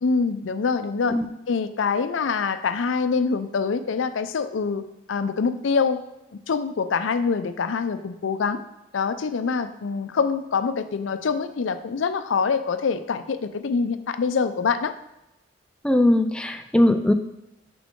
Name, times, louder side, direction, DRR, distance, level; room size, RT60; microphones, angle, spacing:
voice 1, 0.0-1.2 1.5-6.0 6.5-8.6 8.9-14.9, left 5 dB, 85° left, 11 dB, 0.5 m, -25 dB
voice 2, 15.8-17.1, left 1 dB, 5° left, 6 dB, 0.3 m, -19 dB
7.4 x 6.0 x 3.6 m, 0.90 s
head